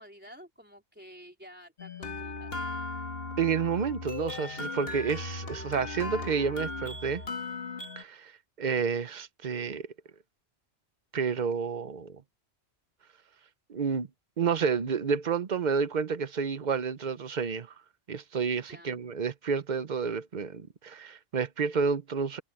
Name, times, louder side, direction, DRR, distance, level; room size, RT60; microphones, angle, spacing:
voice 1, 0.0-2.6 18.5-19.1, equal, 10° right, 3.9 m, -51 dB
sound 1, 1.8-8.0, left 3 dB, 60° left, 1.9 m, -37 dB
voice 2, 3.4-7.2 8.0-8.3 8.6-9.9 11.1-12.2 13.7-14.1 14.4-17.7 18.1-22.4, right 6 dB, 45° right, 0.9 m, -30 dB
omnidirectional pair, 1.1 m